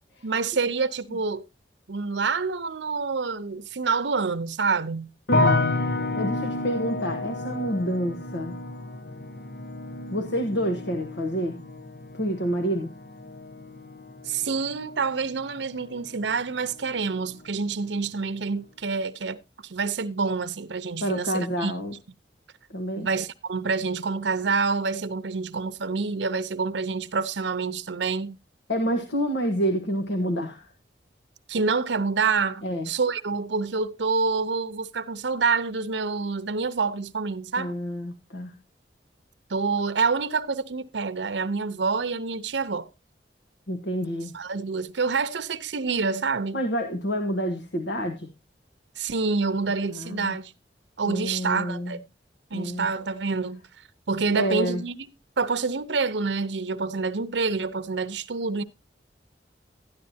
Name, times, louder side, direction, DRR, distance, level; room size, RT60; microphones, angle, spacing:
voice 1, 0.2-1.4 1.9-5.1 14.2-21.7 23.0-28.4 31.5-37.8 39.5-42.9 44.3-46.6 49.0-50.5 51.0-52.0 52.5-53.6 54.1-55.1 55.4-58.6, right 4 dB, 85° right, 0.7 m, -27 dB
voice 2, 5.3-5.7 6.2-8.5 10.1-11.6 12.2-12.9 21.0-21.9 22.7-23.1 28.7-30.6 32.6-32.9 37.6-38.5 43.7-44.3 46.5-48.3 49.9-50.4 51.1-51.9 52.5-52.9 54.3-54.8, equal, 85° left, 1.3 m, -28 dB
sound 1, 5.3-16.4 16.6-17.4, left 2 dB, 65° left, 1.0 m, -30 dB
12.5 x 10.5 x 2.8 m
head